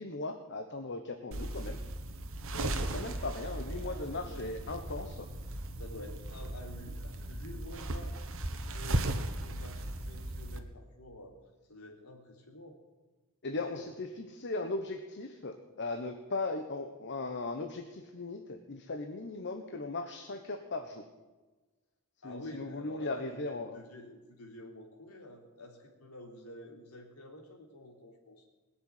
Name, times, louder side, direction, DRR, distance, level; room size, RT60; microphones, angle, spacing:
voice 1, 0.0-1.8 2.5-5.3 13.4-21.0 22.2-23.8, left 3 dB, 55° left, 5 dB, 1.2 m, -38 dB
sound 1, 1.3-10.6, right 1 dB, 65° right, 1.4 m, -37 dB
voice 2, 3.6-4.5 5.0-5.1 5.8-8.2 8.7-11.3 11.7-12.8 22.2-28.5, left 1 dB, 80° left, 1 dB, 3.6 m, -49 dB
20.5 x 6.9 x 9.7 m, 1.2 s
head